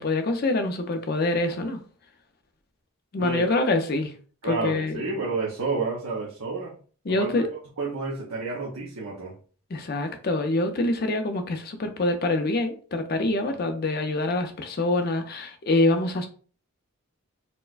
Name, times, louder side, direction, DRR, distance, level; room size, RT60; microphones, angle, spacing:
voice 1, 0.0-1.8 3.1-4.1 4.4-5.1 7.1-7.5 9.7-16.3, left 2 dB, 45° left, 0.5 m, -25 dB
voice 2, 4.4-6.7 7.1-7.5 7.8-9.4, right 3 dB, 80° right, 0.8 m, -30 dB
4.3 x 2.2 x 2.4 m
head